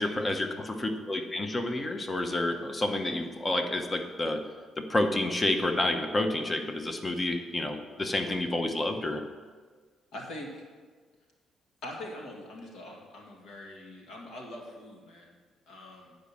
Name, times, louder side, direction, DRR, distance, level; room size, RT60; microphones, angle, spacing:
voice 1, 0.0-4.5 4.8-9.2, left 1 dB, 25° left, 6 dB, 0.9 m, -29 dB
voice 2, 10.1-10.6 11.8-15.3 15.7-16.2, left 1 dB, 70° left, 0 dB, 2.0 m, -43 dB
9.8 x 5.2 x 7.2 m, 1.5 s
cardioid pair, 100°, 0 cm